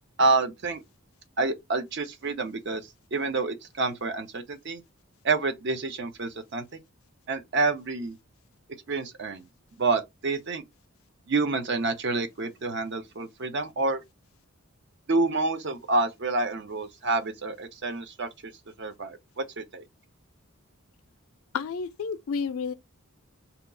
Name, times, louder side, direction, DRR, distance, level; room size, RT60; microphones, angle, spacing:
voice 1, 0.2-0.8 1.4-2.8 3.1-4.8 5.2-6.6 7.3-8.2 8.9-9.4 9.8-10.6 11.3-14.0 15.1-18.5 18.8-19.8, right 3 dB, 55° right, 0.5 m, -28 dB
voice 2, 21.5-22.7, left 5 dB, 75° left, 0.4 m, -30 dB
2.8 x 2.3 x 3.7 m
head